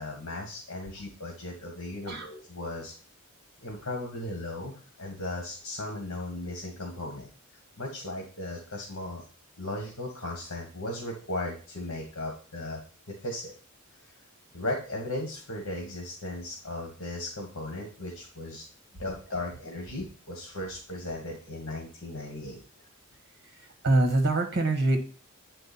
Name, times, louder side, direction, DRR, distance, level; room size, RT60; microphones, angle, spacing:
voice 1, 0.0-2.9 3.6-7.3 7.8-9.2 9.6-12.8 13.1-13.5 14.5-18.6 19.0-22.6, left 1 dB, 65° left, 0 dB, 1.6 m, -36 dB
voice 2, 23.4-25.0, right 2 dB, 50° right, 5 dB, 1.7 m, -25 dB
8.9 x 4.5 x 4.2 m, 0.39 s
head